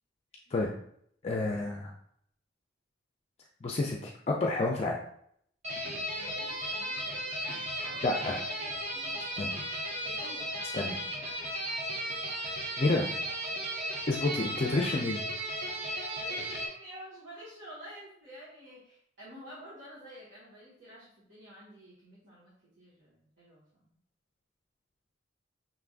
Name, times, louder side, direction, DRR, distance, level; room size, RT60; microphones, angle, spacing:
voice 1, 1.2-1.9 3.6-5.0 8.0-8.4 9.4-9.5 10.7-11.0 12.4-12.5 12.8-13.1 14.1-15.2, left 2 dB, 35° left, 0 dB, 0.4 m, -29 dB
sound 1, 5.6-16.7, right 1 dB, 35° right, 1.2 m, -35 dB
voice 2, 6.1-7.3 7.7-9.3 10.0-10.7 13.5-13.7 16.2-23.9, equal, 65° right, -10 dB, 1.6 m, -50 dB
5.6 x 3.4 x 2.5 m, 0.68 s
head